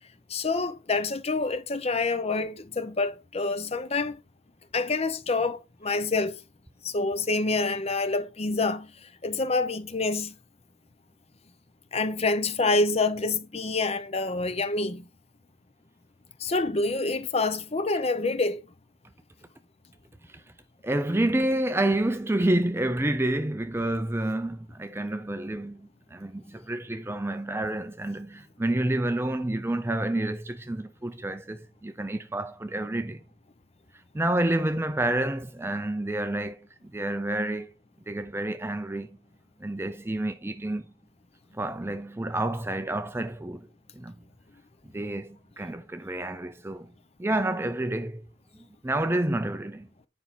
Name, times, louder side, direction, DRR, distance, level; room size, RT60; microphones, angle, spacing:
voice 1, 0.3-4.2 4.7-6.4 6.8-10.3 11.9-15.1 16.4-18.6, left 3 dB, 30° left, 0.7 m, -27 dB
voice 2, 20.8-33.2 34.1-37.7 38.1-39.2 39.6-40.8 41.5-43.7 43.9-44.2 44.9-46.9 47.2-48.2 48.8-49.9, right 1 dB, 10° right, 0.4 m, -29 dB
9.4 x 5.5 x 4.1 m
head